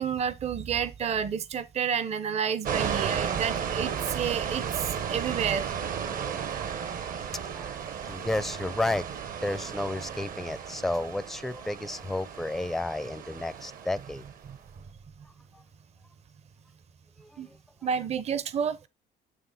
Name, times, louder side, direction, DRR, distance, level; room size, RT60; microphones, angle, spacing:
voice 1, 0.0-5.7 14.5-14.6 17.4-17.5 17.8-18.9, right 7 dB, 40° right, 0.7 m, -30 dB
sound 1, 2.7-14.4, right 7 dB, 55° right, 1.1 m, -34 dB
voice 2, 6.1-7.2 7.5-7.8 8.0-9.1 9.4-14.2 15.5-15.6 17.2-17.6, left 2 dB, ahead, 0.5 m, -32 dB
9.3 x 3.4 x 5.6 m
cardioid pair, 110°, 17 cm